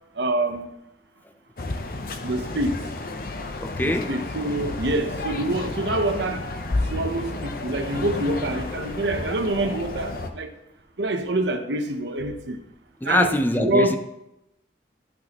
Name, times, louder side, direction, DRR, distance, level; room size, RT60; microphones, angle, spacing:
voice 1, 0.2-0.7 2.2-2.8 3.8-6.4 6.9-10.5 11.0-12.6 13.0-14.0, right 2 dB, 85° right, 7 dB, 0.9 m, -26 dB
sound 1, 1.6-10.3, left 2 dB, 55° left, 0.7 m, -31 dB
voice 2, 3.6-4.1 13.0-14.0, left 1 dB, 10° left, 8 dB, 0.5 m, -23 dB
13.0 x 6.0 x 3.0 m, 0.86 s
head